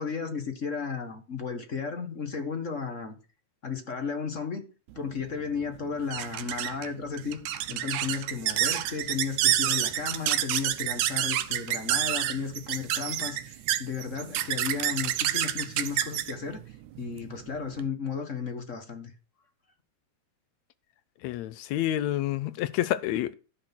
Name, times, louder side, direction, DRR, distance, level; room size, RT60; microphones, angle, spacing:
voice 1, 0.0-3.2 3.6-4.6 4.9-7.4 7.7-19.1, left 5 dB, 40° left, 1.1 m, -34 dB
sound 1, 5.0-17.9, right 12 dB, 85° right, 2.2 m, -29 dB
voice 2, 21.2-23.3, left 13 dB, 75° left, 1.9 m, -28 dB
13.0 x 6.4 x 6.0 m
omnidirectional pair, 3.3 m